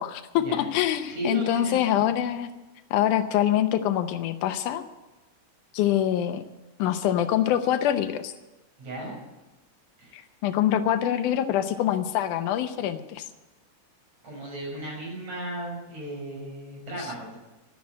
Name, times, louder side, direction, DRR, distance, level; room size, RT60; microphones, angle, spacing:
voice 1, 0.0-2.5 2.9-4.8 5.7-6.4 6.8-8.3 10.1-13.3, left 11 dB, 90° left, 8 dB, 2.3 m, -25 dB
voice 2, 1.0-2.0 8.8-9.1 10.0-10.2 14.2-17.4, right 1 dB, 60° right, -3 dB, 8.1 m, -35 dB
13.5 x 10.5 x 9.6 m, 1.1 s
omnidirectional pair, 3.5 m